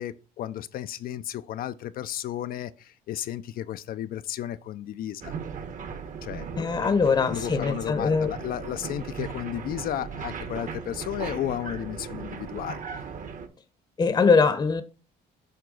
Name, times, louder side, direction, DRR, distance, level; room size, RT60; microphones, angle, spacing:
voice 1, 0.0-5.3 6.2-6.7 7.3-12.8, left 11 dB, 60° left, 0.5 m, -33 dB
sound 1, 5.2-13.5, right 6 dB, 50° right, 1.2 m, -37 dB
voice 2, 6.6-8.3 14.0-14.8, left 5 dB, 25° left, 0.8 m, -22 dB
7.8 x 4.6 x 3.9 m
cardioid pair, 110°, 17 cm